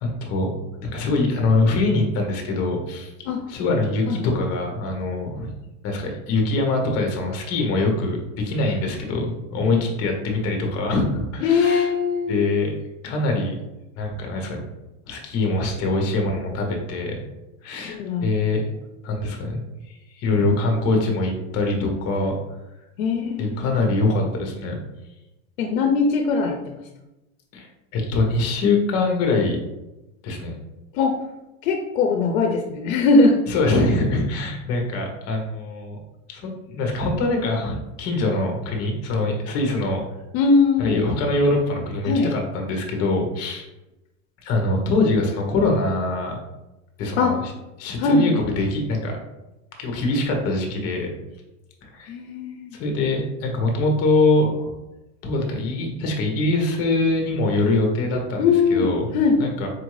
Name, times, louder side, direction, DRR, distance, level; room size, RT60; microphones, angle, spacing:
voice 1, 0.0-3.1 3.5-5.5 5.8-11.9 12.3-12.7 13.0-13.5 13.9-14.6 15.1-17.2 17.6-18.6 19.0-22.4 23.4-24.8 27.5-29.6 30.2-30.5 33.5-36.0 36.3-40.0 40.8-43.7 44.4-46.4 47.0-47.4 47.8-49.2 49.8-51.1 51.8-52.1 52.7-54.7 55.2-58.4 58.7-59.0 59.4-59.7, left 2 dB, 40° left, 2 dB, 0.9 m, -23 dB
voice 2, 11.4-12.5 17.9-18.3 23.0-23.9 25.6-26.8 30.9-31.2 31.6-33.4 40.3-41.0 42.1-42.3 47.2-47.3 48.0-48.4 52.1-52.8 58.4-59.4, left 4 dB, 90° left, 3 dB, 0.6 m, -20 dB
4.5 x 2.6 x 3.1 m, 0.97 s
supercardioid pair, 160°, 39 cm